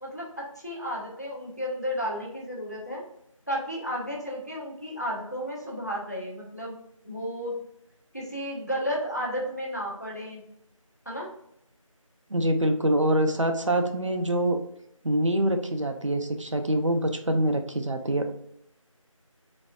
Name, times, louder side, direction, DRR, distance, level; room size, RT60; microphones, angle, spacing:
voice 1, 0.0-3.0 3.5-6.8 7.0-7.6 8.1-10.4 11.1-11.3, equal, 30° left, -2 dB, 0.7 m, -33 dB
voice 2, 12.3-14.6 15.0-18.3, right 1 dB, 60° right, 5 dB, 0.5 m, -25 dB
4.1 x 2.5 x 2.3 m, 0.72 s
figure-of-eight pair, 180°, 18 cm